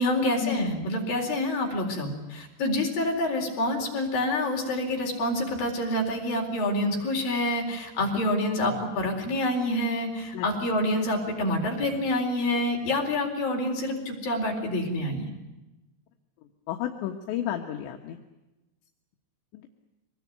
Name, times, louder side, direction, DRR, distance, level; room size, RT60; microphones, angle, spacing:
voice 1, 0.0-15.3, left 1 dB, 50° left, 1 dB, 5.7 m, -27 dB
voice 2, 16.7-18.2 19.5-19.7, left 10 dB, 75° left, 2 dB, 3.6 m, -31 dB
25.0 x 20.5 x 9.4 m, 1.0 s
omnidirectional pair, 5.4 m